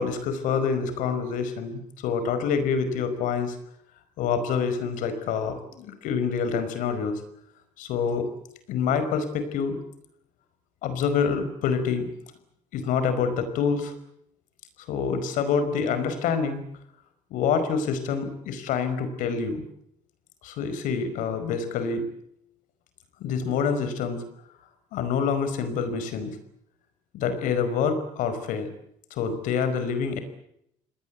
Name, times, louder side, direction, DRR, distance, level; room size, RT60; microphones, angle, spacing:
voice 1, 0.0-3.5 4.2-7.2 7.8-8.3 8.7-9.8 10.8-12.1 12.7-13.9 14.9-16.6 17.3-19.7 20.4-22.1 23.2-24.2 24.9-26.4 27.1-28.7 29.1-30.2, left 6 dB, 75° left, 10 dB, 5.1 m, -26 dB
28.5 x 20.0 x 8.3 m, 0.74 s
cardioid pair, 125°, 14 cm